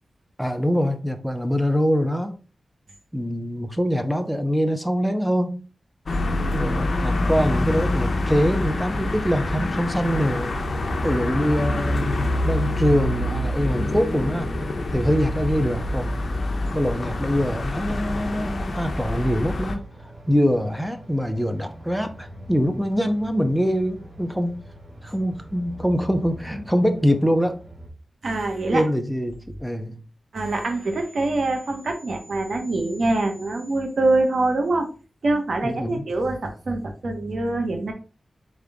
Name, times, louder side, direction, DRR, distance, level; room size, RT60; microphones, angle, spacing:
voice 1, 0.4-2.4 3.1-5.6 6.4-10.5 11.0-14.5 14.9-16.2 16.7-19.9 20.3-24.7 25.0-27.6 28.7-30.0 35.6-36.0, equal, ahead, 0.6 m, -24 dB
sound 1, 6.1-19.8, left 1 dB, 60° left, 0.7 m, -26 dB
sound 2, 10.4-27.9, right 1 dB, 50° right, 1.7 m, -43 dB
voice 2, 28.2-28.8 30.3-34.9 35.2-37.9, right 2 dB, 70° right, 1.0 m, -24 dB
3.8 x 3.6 x 3.5 m
wide cardioid pair, 90°, 0 cm